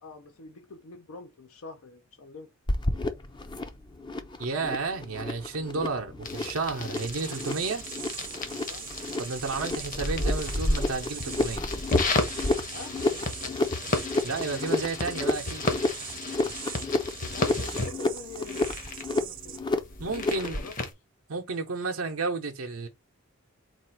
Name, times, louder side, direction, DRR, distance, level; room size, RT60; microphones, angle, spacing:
voice 1, 0.0-2.5 8.6-8.9 12.7-13.7 17.3-18.7 19.1-19.8 20.3-20.7, left 3 dB, 80° left, 0.6 m, -45 dB
sound 1, 2.7-20.7, left 2 dB, 20° left, 0.5 m, -31 dB
voice 2, 4.4-7.8 9.2-11.6 14.2-15.7 20.0-20.6 21.3-22.9, right 4 dB, 80° right, 0.8 m, -32 dB
sound 2, 6.2-20.9, left 3 dB, 40° left, 0.9 m, -34 dB
sound 3, 6.9-19.6, right 11 dB, 40° right, 0.5 m, -43 dB
4.2 x 2.4 x 4.4 m
head